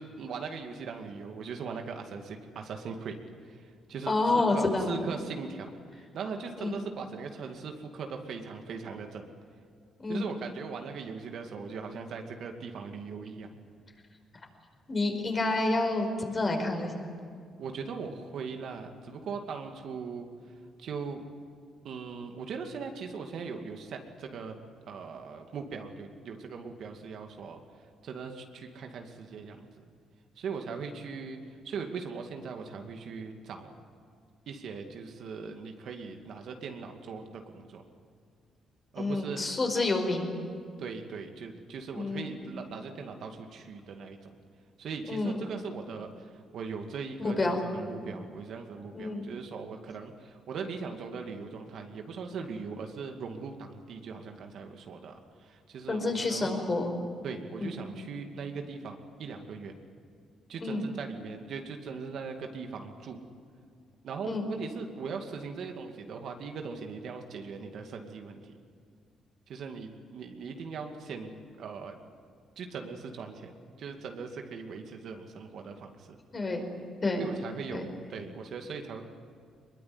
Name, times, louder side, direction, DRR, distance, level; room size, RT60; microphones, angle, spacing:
voice 1, 0.0-3.2 3.5-9.3 10.1-13.6 17.6-20.3 20.8-21.2 21.8-24.5 24.9-27.6 28.0-29.8 30.4-31.4 31.6-33.7 34.5-37.8 38.9-39.5 40.8-44.4 44.8-55.1 55.4-56.5 57.2-59.7 60.5-63.2 64.0-68.6 69.5-72.0 72.6-76.2 77.2-79.0, right 5 dB, 70° right, 4 dB, 2.3 m, -40 dB
voice 2, 4.1-5.0 6.6-6.8 10.0-10.3 14.9-17.1 39.0-40.3 42.0-42.4 45.1-45.4 47.2-47.6 48.9-49.3 55.9-57.0 57.6-57.8 60.6-60.9 64.3-64.5 76.3-76.7 77.0-77.2 77.7-77.8, left 2 dB, 30° left, 3 dB, 5.1 m, -29 dB
22.0 x 21.5 x 9.6 m, 2.2 s
cardioid pair, 90°, 0 cm